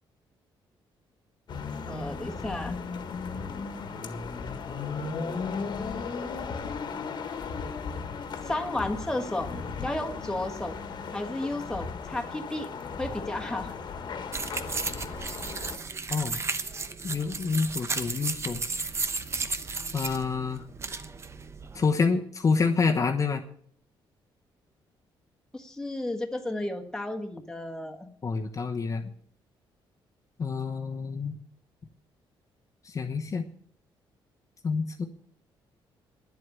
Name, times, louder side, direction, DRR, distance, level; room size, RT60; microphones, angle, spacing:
sound 1, 1.5-15.8, left 5 dB, 55° left, 1.6 m, -36 dB
voice 1, 1.9-2.8 8.4-9.5 9.8-10.8 11.1-12.7 13.0-13.7 25.5-28.1, left 1 dB, 5° left, 3 dB, 1.6 m, -33 dB
sound 2, 14.3-21.9, right 4 dB, 30° right, 0.9 m, -34 dB
voice 2, 17.0-18.6 19.9-20.6 21.7-23.4 28.2-29.0 30.4-31.4 32.8-33.4 34.6-35.0, left 4 dB, 35° left, 3 dB, 1.0 m, -27 dB
10.5 x 7.8 x 9.8 m, 0.62 s
cardioid pair, 120°, 9 cm